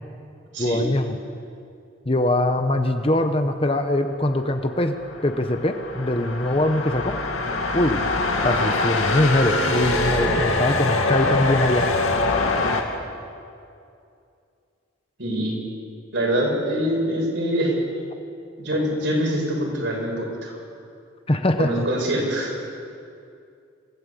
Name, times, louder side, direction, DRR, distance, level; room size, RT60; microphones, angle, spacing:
voice 1, 0.6-1.2 2.1-5.0 5.2-7.2 7.7-8.0 8.4-11.9 21.3-21.8, left 1 dB, 25° left, 7 dB, 1.1 m, -22 dB
sound 1, 4.9-12.8, left 2 dB, 80° left, 2.5 m, -24 dB
voice 2, 15.2-15.6 16.1-17.8 18.6-20.6 21.6-22.7, equal, 65° right, -1 dB, 6.8 m, -24 dB
27.0 x 16.5 x 8.5 m, 2.5 s
head